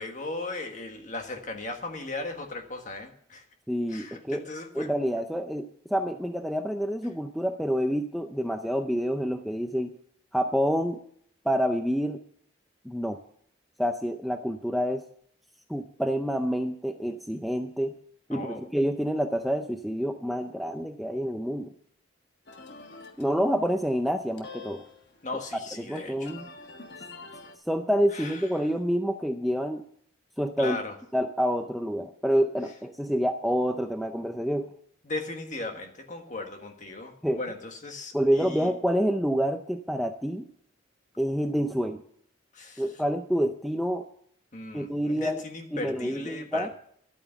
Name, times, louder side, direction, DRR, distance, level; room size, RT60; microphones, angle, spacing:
voice 1, 0.0-3.4 3.9-4.9 18.3-18.7 25.2-26.3 28.1-28.7 30.6-31.0 35.0-38.7 42.5-42.8 44.5-46.7, left 2 dB, 40° left, 4 dB, 1.5 m, -37 dB
voice 2, 3.7-4.5 4.7-9.9 10.3-11.0 11.5-12.2 12.9-13.2 13.8-15.0 15.7-17.9 18.3-21.7 23.2-24.8 25.8-26.5 27.7-29.8 30.4-30.8 31.1-34.7 37.2-37.4 38.1-40.5 41.2-42.0 42.8-44.1 44.7-45.4 45.7-46.7, equal, ahead, 6 dB, 0.5 m, -27 dB
sound 1, 22.5-27.6, left 4 dB, 60° left, 1.4 m, -47 dB
11.5 x 8.9 x 6.9 m, 0.65 s
head